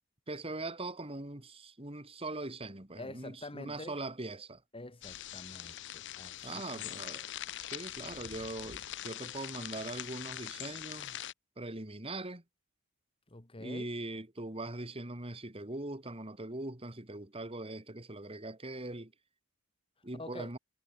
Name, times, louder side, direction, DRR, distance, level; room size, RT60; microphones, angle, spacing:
voice 1, 0.3-4.6 6.4-7.3 7.6-11.2 11.6-12.4 13.6-19.1 20.0-20.6, right 2 dB, 25° right, 2.2 m, -41 dB
voice 2, 3.0-4.0 4.7-6.4 6.7-6.9 13.3-13.9 20.2-20.5, left 2 dB, 25° left, 1.7 m, -46 dB
sound 1, 5.0-11.3, left 12 dB, 55° left, 0.7 m, -43 dB
head